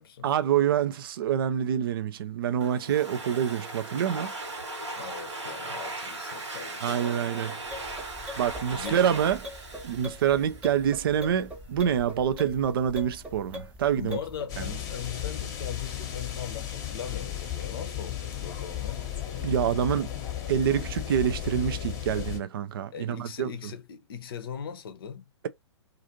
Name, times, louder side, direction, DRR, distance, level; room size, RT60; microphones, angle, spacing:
voice 1, 0.2-4.3 6.8-7.8 8.4-9.4 9.8-14.2 19.4-20.1 20.5-23.5, right 9 dB, 50° right, 0.4 m, -26 dB
Domestic sounds home sounds, 2.6-11.0, right 2 dB, 80° right, 1.2 m, -38 dB
voice 2, 5.0-7.4 8.1-9.0 14.0-19.1 22.9-25.3, left 7 dB, 55° left, 0.6 m, -40 dB
sound 1, 7.6-14.5, left 1 dB, 10° right, 0.7 m, -42 dB
sound 2, 14.5-22.4, left 11 dB, 25° left, 0.9 m, -34 dB
2.5 x 2.4 x 2.8 m
figure-of-eight pair, 120°, 15 cm